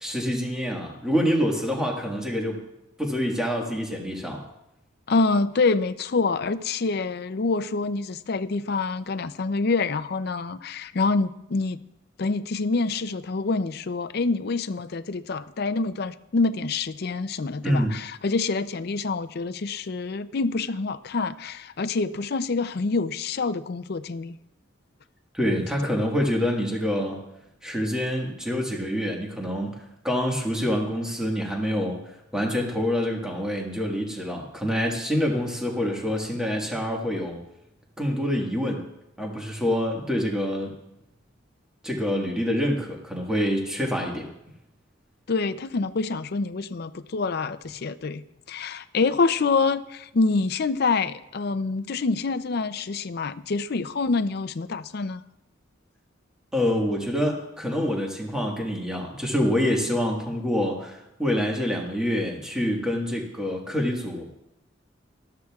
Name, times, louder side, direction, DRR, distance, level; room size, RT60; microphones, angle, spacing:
voice 1, 0.0-2.6 3.0-4.4 17.6-17.9 25.3-27.2 27.6-37.4 38.0-38.9 39.2-40.7 41.8-44.3 56.5-64.3, equal, 5° right, -1 dB, 1.6 m, -26 dB
voice 2, 5.1-11.8 12.2-24.4 25.8-25.9 45.3-48.2 48.5-55.2, left 3 dB, 50° left, 11 dB, 0.5 m, -26 dB
19.0 x 13.5 x 2.4 m, 0.87 s
head